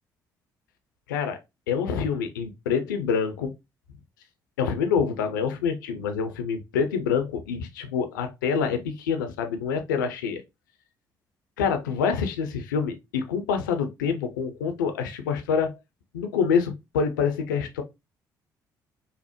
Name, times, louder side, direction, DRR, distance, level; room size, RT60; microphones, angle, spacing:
voice 1, 1.1-1.4 1.7-3.5 4.6-10.4 11.6-15.8 16.1-17.8, left 6 dB, 75° left, 0.5 m, -26 dB
5.6 x 2.1 x 2.9 m
figure-of-eight pair, 45°, 10 cm